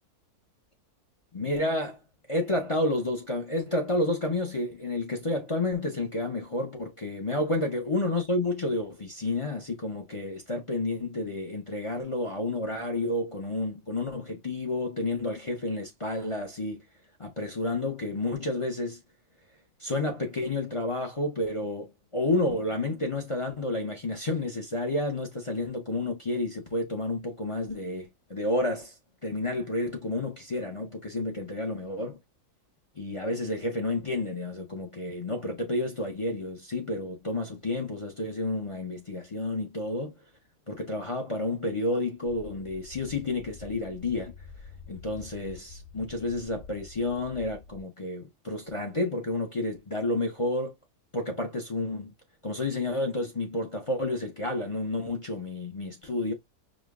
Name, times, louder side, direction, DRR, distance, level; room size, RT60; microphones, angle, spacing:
voice 1, 1.3-2.0 2.3-16.8 17.2-19.0 19.8-28.9 29.2-32.2 33.0-40.1 40.7-44.3 44.9-50.8 51.1-52.1 52.4-56.3, left 2 dB, 35° left, 0.5 m, -30 dB
sound 1, 42.2-47.8, left 4 dB, 50° left, 1.4 m, -47 dB
5.2 x 2.3 x 2.3 m
omnidirectional pair, 1.6 m